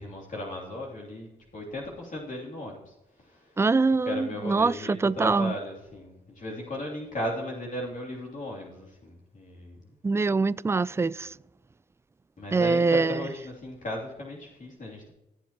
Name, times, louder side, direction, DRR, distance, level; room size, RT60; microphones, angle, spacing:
voice 1, 0.0-3.6 4.0-9.9 12.4-15.1, left 1 dB, 45° left, 2.9 m, -36 dB
voice 2, 3.6-5.5 10.0-11.4 12.5-13.3, right 4 dB, 15° right, 0.3 m, -24 dB
16.5 x 7.2 x 3.0 m
supercardioid pair, 45°, 18 cm